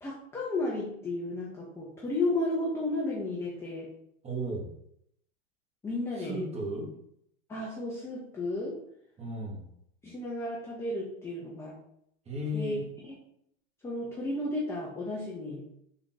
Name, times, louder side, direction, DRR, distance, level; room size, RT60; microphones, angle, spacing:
voice 1, 0.0-3.9 5.8-6.4 7.5-8.8 10.0-11.7 12.5-12.7 13.1-13.2 13.8-15.6, left 2 dB, 5° left, -5 dB, 0.4 m, -33 dB
voice 2, 4.2-4.7 6.2-6.9 9.2-9.7 12.3-12.8, right 1 dB, 15° right, -1 dB, 0.9 m, -34 dB
3.6 x 2.3 x 3.7 m, 0.73 s
hypercardioid pair, 120°, 38 cm